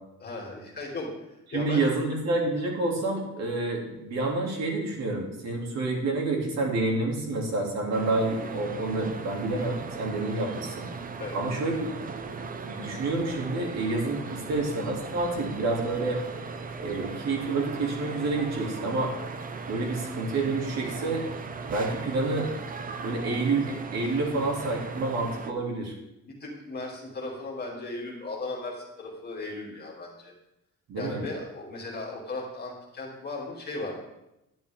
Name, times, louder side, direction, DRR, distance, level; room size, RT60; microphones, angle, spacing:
voice 1, 0.2-1.8 11.2-11.4 26.2-30.3 30.9-33.9, left 2 dB, 30° left, -2 dB, 2.7 m, -37 dB
voice 2, 1.5-10.9 11.3-11.9 12.7-16.2 16.8-19.1 19.7-21.3 21.7-22.5 23.0-25.9 30.9-31.2, right 2 dB, 55° right, 0 dB, 2.7 m, -28 dB
sound 1, 7.9-25.5, right 4 dB, 25° right, 0.7 m, -38 dB
11.5 x 10.5 x 3.6 m, 0.89 s
cardioid pair, 155°, 32 cm